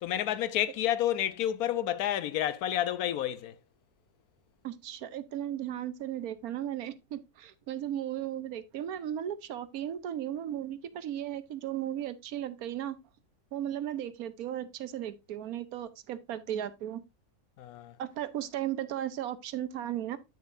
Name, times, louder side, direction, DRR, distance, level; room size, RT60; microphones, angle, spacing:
voice 1, 0.0-3.5 17.6-17.9, left 11 dB, 85° left, 1.2 m, -30 dB
voice 2, 4.6-13.0 13.5-17.0 18.0-20.2, right 11 dB, 85° right, 1.2 m, -36 dB
9.5 x 6.1 x 2.6 m
omnidirectional pair, 1.5 m